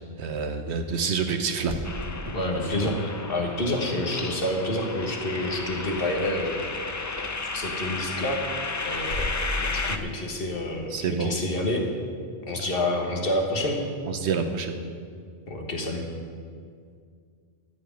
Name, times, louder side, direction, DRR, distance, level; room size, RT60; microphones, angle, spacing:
voice 1, 0.2-1.7 10.9-11.3 14.1-14.7, right 5 dB, 80° right, 6 dB, 1.2 m, -27 dB
sound 1, 1.5-3.0 4.1-4.7 5.0-5.5 8.9-10.3, left 1 dB, 40° right, 1.5 m, -35 dB
sound 2, 1.8-10.0, left 3 dB, 30° left, 0.3 m, -33 dB
voice 2, 2.3-6.6 7.5-8.4 8.8-11.9 12.4-13.8 15.5-16.0, left 1 dB, 55° left, 1 dB, 1.7 m, -28 dB
14.0 x 4.9 x 9.1 m, 2.2 s
omnidirectional pair, 1.1 m